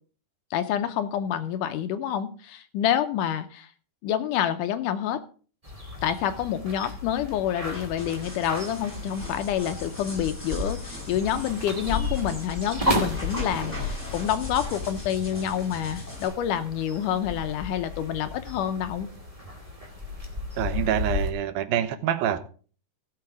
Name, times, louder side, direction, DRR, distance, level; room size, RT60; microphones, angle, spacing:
voice 1, 0.5-3.7 4.0-5.2 6.0-19.1, left 10 dB, 80° left, 10 dB, 2.0 m, -28 dB
sound 1, 5.6-21.3, left 2 dB, 10° right, 1.8 m, -34 dB
sound 2, 7.6-16.3, left 2 dB, 10° left, 6.4 m, -39 dB
voice 2, 20.6-22.4, right 10 dB, 85° right, 11 dB, 2.7 m, -26 dB
16.0 x 6.9 x 4.8 m, 0.40 s
omnidirectional pair, 4.1 m